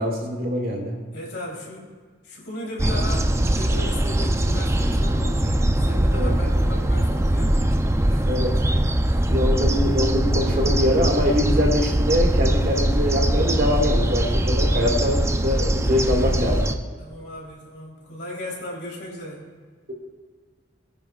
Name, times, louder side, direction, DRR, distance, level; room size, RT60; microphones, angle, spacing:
voice 1, 0.0-1.0 6.1-6.3 8.3-8.5 9.3-16.7, left 1 dB, 55° right, 0 dB, 2.0 m, -23 dB
voice 2, 1.1-1.9 2.2-7.6 8.1-9.4 17.0-19.5, left 1 dB, 65° left, -3 dB, 3.4 m, -37 dB
sound 1, 2.8-16.7, right 1 dB, 15° right, 0.5 m, -21 dB
21.5 x 9.8 x 2.4 m, 1.5 s
head